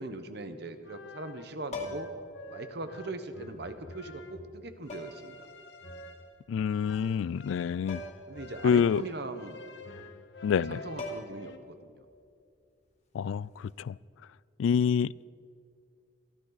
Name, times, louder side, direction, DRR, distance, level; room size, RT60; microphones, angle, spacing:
voice 1, 0.0-2.1 2.5-5.5 8.3-9.6 10.5-12.0, right 2 dB, 60° right, 9 dB, 1.1 m, -40 dB
sound 1, 0.6-11.6, left 2 dB, 70° left, 1.3 m, -49 dB
sound 2, 1.7-2.3 3.6-3.7 4.9-5.3 7.9-8.3 8.6-8.7 10.6-10.7 11.0-11.6 13.5-13.7, left 2 dB, 35° left, 2.0 m, -40 dB
voice 2, 6.5-8.0 8.6-9.0 10.4-10.8 13.1-14.0 14.6-15.1, left 7 dB, 85° left, 22 dB, 0.3 m, -27 dB
23.5 x 15.0 x 4.1 m, 2.5 s
head